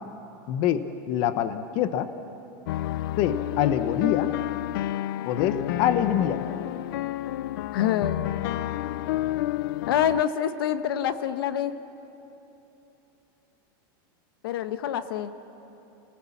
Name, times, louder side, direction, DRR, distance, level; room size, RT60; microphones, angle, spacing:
voice 1, 0.5-0.8 1.1-2.1 3.2-4.3 5.3-6.4, left 10 dB, 45° left, 11 dB, 0.9 m, -25 dB
sound 1, 2.7-10.2, left 14 dB, 65° left, 0.4 m, -30 dB
voice 2, 7.7-8.2 9.9-11.7 14.4-15.3, left 10 dB, 85° left, 11 dB, 1.1 m, -26 dB
29.5 x 18.5 x 7.2 m, 3.0 s
supercardioid pair, 160°, 12 cm